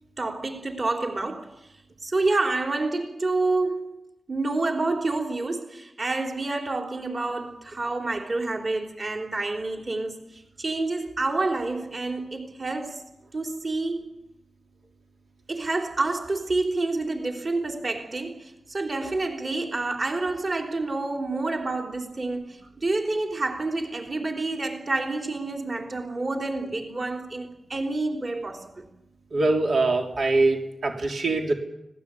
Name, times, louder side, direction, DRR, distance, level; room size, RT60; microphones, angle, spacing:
voice 1, 0.2-1.5 2.0-4.0 4.3-13.0 13.3-14.1 15.5-28.8, right 2 dB, 40° right, 3.6 m, -28 dB
voice 2, 29.3-31.5, right 2 dB, 80° right, 3.4 m, -23 dB
25.0 x 18.5 x 8.5 m
wide cardioid pair, 100°, 0 cm